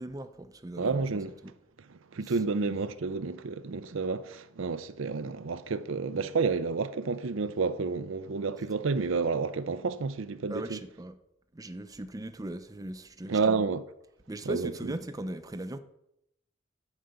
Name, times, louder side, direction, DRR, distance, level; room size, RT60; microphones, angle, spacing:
voice 1, 0.0-1.5 2.2-2.4 10.5-11.2 11.5-13.6 14.3-15.8, right 1 dB, 15° right, 0.5 m, -39 dB
voice 2, 0.8-1.3 2.1-10.8 13.3-13.8 14.5-14.9, right 4 dB, 65° right, 0.5 m, -30 dB
11.5 x 5.0 x 6.8 m
head